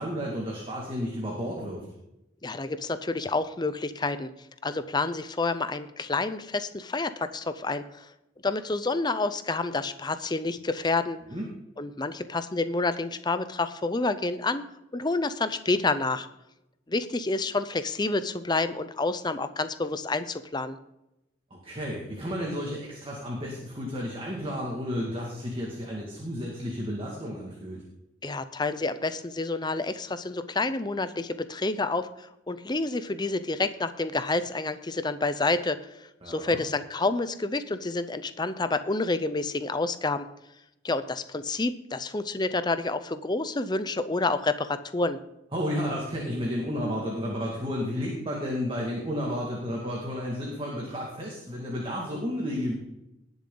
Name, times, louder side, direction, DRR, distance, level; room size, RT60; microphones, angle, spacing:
voice 1, 0.0-1.9 11.3-11.5 21.5-27.8 36.2-36.6 45.5-52.7, equal, 30° right, -3 dB, 2.1 m, -32 dB
voice 2, 2.4-4.3 4.6-8.1 8.4-11.2 11.8-14.6 14.9-16.3 16.9-20.8 28.2-40.3 40.8-45.2, left 3 dB, 25° left, 12 dB, 0.6 m, -29 dB
19.0 x 7.1 x 3.9 m, 0.89 s
head